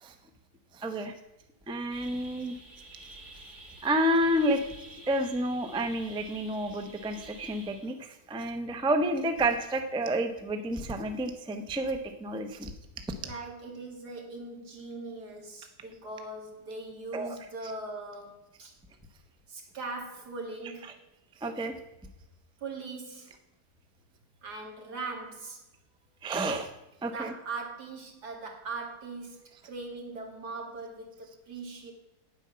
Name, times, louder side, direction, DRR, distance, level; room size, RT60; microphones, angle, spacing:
voice 1, 0.7-1.1 1.7-2.6 3.8-4.7 5.1-12.7 17.1-17.4 21.4-21.7 26.2-26.7 27.0-27.3, right 1 dB, 5° right, 6 dB, 0.4 m, -30 dB
sound 1, 1.9-7.9, right 1 dB, 50° right, 2.7 m, -50 dB
voice 2, 13.2-18.7 19.5-20.9 22.6-23.3 24.4-25.6 27.1-31.9, right 3 dB, 85° right, 2 dB, 2.5 m, -40 dB
9.3 x 8.0 x 5.7 m, 0.91 s
omnidirectional pair, 1.7 m